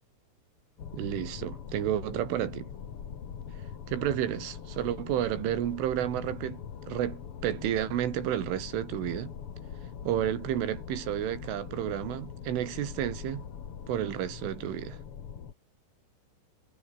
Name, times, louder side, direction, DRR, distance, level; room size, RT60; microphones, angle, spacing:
sound 1, 0.8-15.5, left 8 dB, 55° left, 1.6 m, -42 dB
voice 1, 0.9-2.7 3.9-9.3 10.0-13.5 13.9-15.0, right 11 dB, 85° right, 4.7 m, -31 dB
omnidirectional pair, 5.5 m